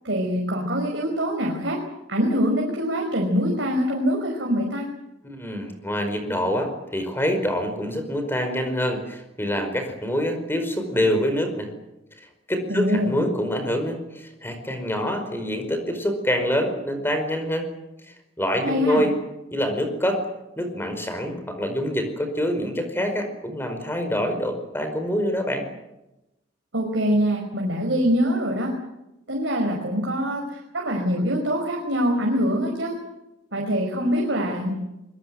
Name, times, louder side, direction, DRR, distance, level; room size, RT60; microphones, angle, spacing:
voice 1, 0.0-1.8 2.1-4.9 12.7-13.1 18.6-19.0 26.7-28.7 29.3-32.9 33.5-34.7, equal, 65° right, 0 dB, 5.1 m, -24 dB
voice 2, 5.2-11.7 12.5-17.7 18.4-19.2 19.5-20.2 20.6-25.6, equal, 10° left, 6 dB, 5.0 m, -26 dB
24.5 x 22.0 x 7.8 m, 0.92 s
head